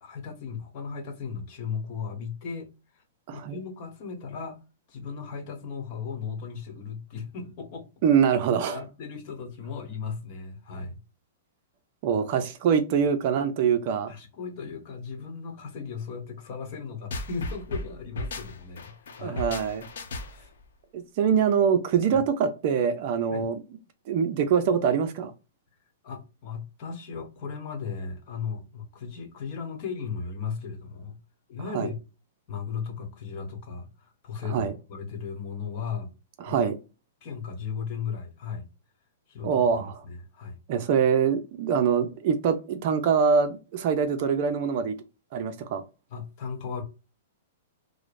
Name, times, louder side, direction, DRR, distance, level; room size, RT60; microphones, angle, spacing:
voice 1, 0.0-3.0 3.3-4.6 4.9-7.9 8.6-11.0 14.1-19.4 20.3-20.5 23.3-23.5 26.0-31.2 31.5-32.0 32.5-36.1 36.4-36.6 37.2-38.7 39.3-40.6 46.1-46.8, left 6 dB, 40° left, 1.0 m, -36 dB
voice 2, 3.3-3.6 8.0-8.8 12.0-14.1 19.2-19.9 20.9-23.6 24.1-25.3 31.7-31.9 34.4-34.7 36.4-36.8 39.4-40.0 40.7-44.9 45.3-45.8, right 7 dB, 40° right, 0.5 m, -24 dB
sound 1, 17.1-20.6, left 2 dB, 80° left, 0.8 m, -35 dB
4.8 x 2.1 x 2.5 m
hypercardioid pair, 160°, 0 cm